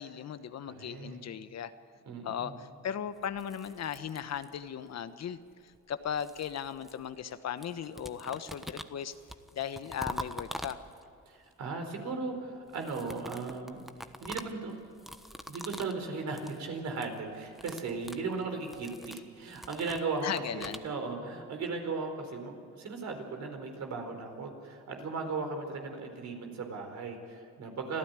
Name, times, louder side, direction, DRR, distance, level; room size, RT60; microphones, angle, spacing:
voice 1, 0.0-1.7 2.2-9.1 9.5-10.8 20.2-20.8, left 8 dB, 60° left, 11 dB, 1.2 m, -37 dB
voice 2, 0.6-1.2 2.1-2.6 11.3-13.8 14.2-14.7 15.5-28.0, right 4 dB, 65° right, 4 dB, 4.5 m, -37 dB
sound 1, 3.2-4.8 5.7-7.3 7.6-11.2 12.7-16.0 16.3-16.6 16.9-17.2 17.5-20.9, equal, ahead, 1.1 m, -45 dB
26.0 x 14.5 x 9.7 m, 2.4 s
cardioid pair, 90°, 30 cm